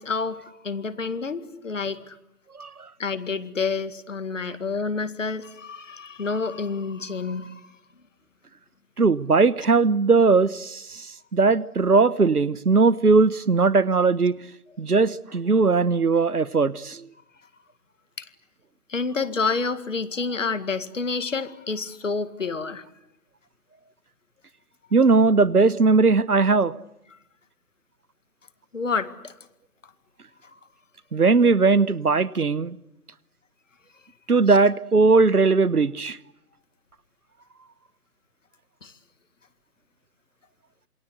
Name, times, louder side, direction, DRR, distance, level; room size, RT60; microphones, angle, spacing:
voice 1, 0.0-2.2 3.0-7.6 18.2-18.3 18.9-22.8 28.7-29.3 38.8-38.9, left 4 dB, 55° left, 11 dB, 2.1 m, -29 dB
voice 2, 9.0-11.1 11.3-14.4 14.8-17.1 24.9-26.7 31.1-32.8 34.3-36.2, right 4 dB, 75° right, 20 dB, 1.2 m, -19 dB
27.5 x 23.5 x 8.3 m, 0.87 s
figure-of-eight pair, 145°, 45 cm